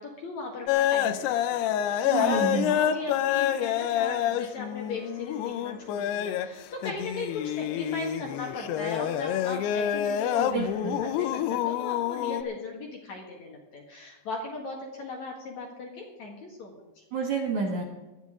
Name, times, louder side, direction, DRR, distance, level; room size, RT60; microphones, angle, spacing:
voice 1, 0.0-16.8, left 3 dB, 55° left, 0 dB, 2.4 m, -38 dB
sound 1, 0.7-12.4, left 10 dB, 80° left, 2.6 m, -27 dB
voice 2, 2.0-2.8 10.4-11.0 17.1-17.8, right 4 dB, 55° right, 0 dB, 2.3 m, -29 dB
18.5 x 12.5 x 3.7 m, 1.1 s
omnidirectional pair, 4.9 m